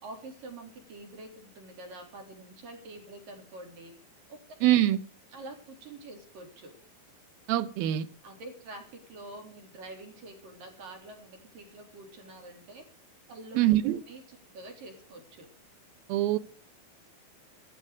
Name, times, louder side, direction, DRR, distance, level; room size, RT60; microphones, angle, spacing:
voice 1, 0.0-3.9 4.3-4.7 5.3-6.7 8.2-12.9 13.3-13.8 14.0-15.5, right 2 dB, 70° right, 5.4 m, -46 dB
voice 2, 4.6-5.0 7.5-8.1 13.6-14.0 16.1-16.4, right 14 dB, 90° right, 2.8 m, -24 dB
15.0 x 14.5 x 5.0 m
omnidirectional pair, 4.1 m